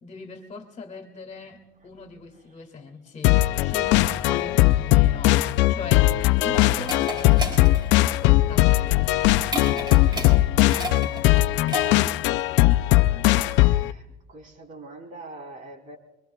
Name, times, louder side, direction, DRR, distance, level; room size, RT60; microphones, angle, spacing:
voice 1, 0.0-5.4 5.7-7.1 8.2-9.1, left 4 dB, 40° left, 4 dB, 2.3 m, -40 dB
sound 1, 3.2-13.9, left 17 dB, 85° left, 0.5 m, -19 dB
sound 2, 5.8-12.2, equal, 25° right, 4.4 m, -34 dB
voice 2, 13.3-14.0 14.3-16.0, right 2 dB, 45° right, 3 dB, 3.3 m, -43 dB
26.5 x 23.0 x 2.3 m, 1.0 s
cardioid pair, 125°, 18 cm